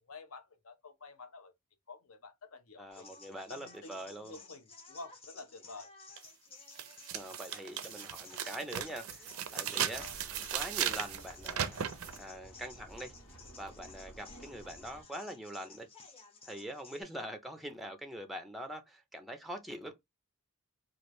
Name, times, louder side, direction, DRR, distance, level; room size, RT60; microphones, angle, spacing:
voice 1, 0.0-1.5 1.9-3.1 3.5-5.9 9.9-10.2, left 3 dB, 70° left, 0.8 m, -50 dB
voice 2, 2.8-4.4 7.1-10.1 10.5-11.8 12.2-13.1 13.6-15.9 16.5-19.9, right 1 dB, ahead, 0.4 m, -43 dB
sound 1, 2.9-17.0, left 4 dB, 25° left, 0.8 m, -55 dB
sound 2, 6.2-6.3 6.8-12.2, right 9 dB, 70° right, 0.5 m, -37 dB
sound 3, 9.9-15.0, right 1 dB, 90° left, 1.5 m, -54 dB
3.1 x 2.5 x 3.1 m
head